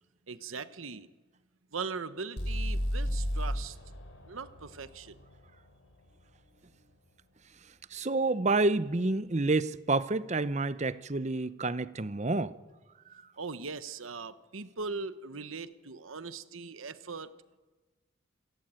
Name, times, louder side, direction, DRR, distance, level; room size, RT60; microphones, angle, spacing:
voice 1, 0.3-1.1 1.7-3.8 4.3-5.2 13.4-17.3, right 4 dB, 90° right, 1.1 m, -40 dB
sound 1, 2.4-6.3, equal, 70° left, 4.2 m, -34 dB
voice 2, 7.9-12.5 13.1-13.2, right 3 dB, 35° right, 0.7 m, -29 dB
27.0 x 17.0 x 9.0 m
head